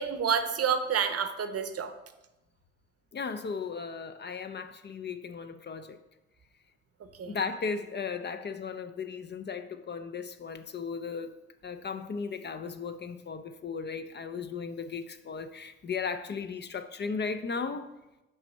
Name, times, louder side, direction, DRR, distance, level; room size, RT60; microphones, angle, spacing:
voice 1, 0.0-1.9 7.2-7.4, right 7 dB, 50° right, 9 dB, 0.7 m, -29 dB
voice 2, 3.1-6.0 7.2-11.3 11.6-17.9, left 5 dB, 35° left, 9 dB, 0.5 m, -36 dB
5.6 x 3.4 x 5.4 m, 0.96 s
hypercardioid pair, 50°, 32 cm